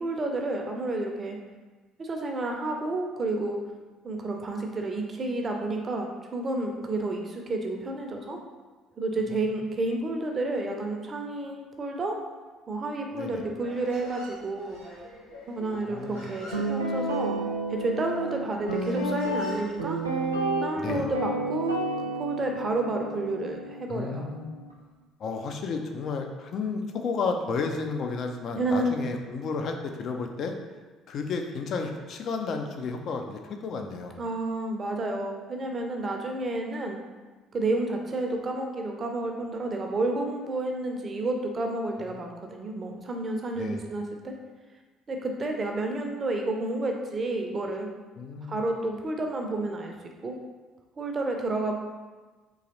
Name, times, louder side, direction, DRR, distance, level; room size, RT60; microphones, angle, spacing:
voice 1, 0.0-1.4 2.0-3.6 4.0-8.4 9.0-12.2 12.7-14.8 15.5-20.0 20.6-24.3 28.6-28.9 34.2-37.0 37.5-44.4 45.1-47.9 48.5-49.9 50.2-50.4 51.0-51.8, right 2 dB, 35° right, 2 dB, 0.6 m, -30 dB
voice 2, 13.1-13.5 15.8-16.3 20.8-21.1 23.9-24.5 25.2-30.5 31.1-34.2 43.6-43.8 48.2-48.6, left 4 dB, 50° left, 4 dB, 0.4 m, -32 dB
Human voice, 13.5-20.6, equal, 90° left, 1.2 m, -47 dB
Guitar, 16.5-24.7, right 2 dB, 85° right, 0.4 m, -31 dB
3.8 x 3.0 x 2.9 m, 1.3 s
figure-of-eight pair, 50°, 0 cm